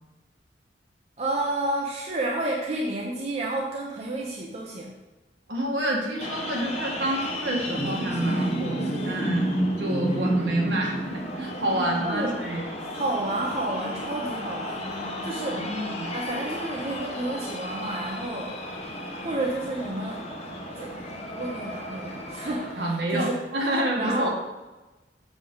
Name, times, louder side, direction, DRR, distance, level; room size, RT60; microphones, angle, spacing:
voice 1, 1.2-5.0 12.0-12.3 12.9-14.9 15.2-15.7 16.1-18.6 19.2-20.3 20.8-23.4 24.0-24.3, right 2 dB, 35° right, -2 dB, 0.8 m, -30 dB
voice 2, 5.5-9.5 9.8-12.7 15.5-16.1 22.8-24.3, right 1 dB, 65° right, -3 dB, 1.9 m, -28 dB
sound 1, 6.2-22.7, equal, 35° left, 1.1 m, -32 dB
7.3 x 6.4 x 3.9 m, 1.1 s
head